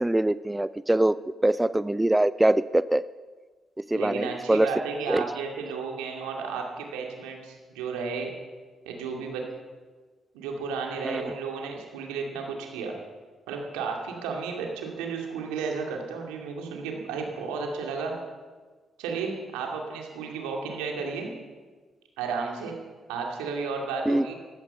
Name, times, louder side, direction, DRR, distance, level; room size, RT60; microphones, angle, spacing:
voice 1, 0.0-3.0 3.8-4.7 5.1-5.2 11.0-11.2 24.1-24.3, right 1 dB, 15° right, 17 dB, 0.4 m, -23 dB
voice 2, 3.9-8.3 8.9-9.4 10.3-12.9 13.5-18.1 19.0-21.3 22.2-22.8 23.1-24.3, right 5 dB, 80° right, 1 dB, 2.4 m, -33 dB
15.5 x 13.5 x 5.6 m, 1.4 s
hypercardioid pair, 40°, 0 cm